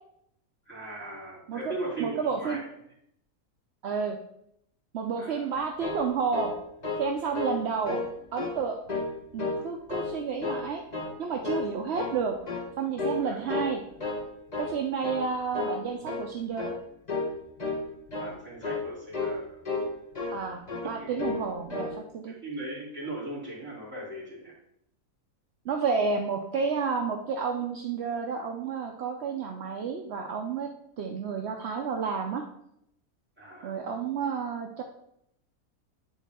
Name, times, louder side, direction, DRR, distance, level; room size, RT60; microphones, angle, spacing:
voice 1, 0.7-2.6 5.2-5.4 13.2-13.3 18.2-19.6 20.8-21.4 22.2-24.5 33.4-33.8, right 2 dB, 5° right, -8 dB, 2.9 m, -38 dB
voice 2, 2.0-2.6 3.8-4.2 4.9-6.5 7.0-8.0 8.3-8.8 9.3-10.8 11.2-12.4 12.8-13.8 14.6-16.7 20.3-22.3 25.6-30.7 31.0-32.4 33.6-34.8, right 5 dB, 60° right, 2 dB, 0.7 m, -30 dB
sound 1, 5.6-7.1 7.3-7.6 7.8-8.5 8.9-9.6 9.9-10.6 10.9-11.2 11.4-12.2 12.5-12.7 13.0-13.2 13.5-14.2 14.5-14.7 15.0-15.3 15.5-15.8 16.0-16.3 16.6-16.8 17.1-17.3 17.6-17.8 18.1-18.3 18.6-18.9 19.1-19.4 19.6-20.4 20.7-20.9 21.2-21.4 21.7-21.9, left 3 dB, 30° left, 1.2 m, -32 dB
9.3 x 4.0 x 3.5 m, 0.76 s
omnidirectional pair, 1.6 m